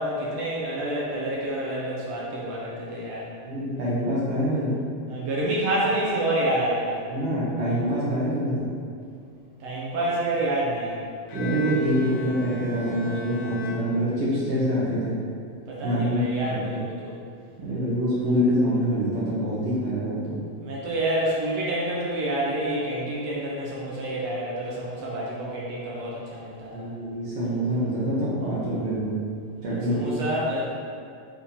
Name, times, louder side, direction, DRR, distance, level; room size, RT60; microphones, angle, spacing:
voice 1, 0.0-3.3 5.1-7.0 9.6-10.9 15.7-17.2 20.6-26.9 29.7-30.7, right 1 dB, 70° right, -5 dB, 1.6 m, -28 dB
voice 2, 3.4-4.7 7.1-8.7 11.3-15.2 15.8-16.8 17.6-20.4 26.7-29.1 29.6-30.1, equal, 55° right, -9 dB, 1.9 m, -25 dB
Bowed string instrument, 11.3-14.6, left 4 dB, 85° left, 1.7 m, -38 dB
7.0 x 3.7 x 4.3 m, 2.4 s
omnidirectional pair, 4.0 m